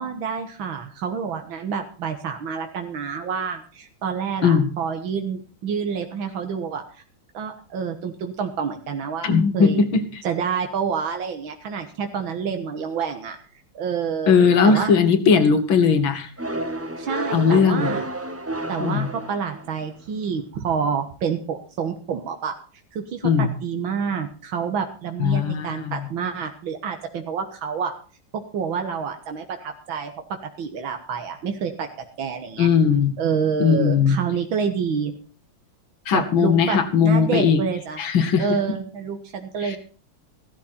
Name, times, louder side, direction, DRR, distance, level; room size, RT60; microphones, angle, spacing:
voice 1, 0.0-7.0 7.3-9.8 10.2-13.4 13.7-14.3 14.6-14.9 17.0-18.1 18.7-22.6 22.9-27.9 28.3-31.9 32.2-32.7 33.2-35.1 36.1-38.0 38.4-39.8, right 6 dB, 90° right, 5 dB, 2.1 m, -28 dB
voice 2, 9.2-10.2 14.3-16.3 17.3-18.0 18.8-19.1 23.2-23.5 25.2-26.1 32.6-33.1 33.6-34.2 36.1-37.6 38.0-38.5 39.6-39.8, left 6 dB, 90° left, 9 dB, 2.3 m, -18 dB
sound 1, 16.4-19.9, right 1 dB, 20° right, 0.4 m, -30 dB
15.5 x 13.0 x 4.3 m, 0.38 s
omnidirectional pair, 2.1 m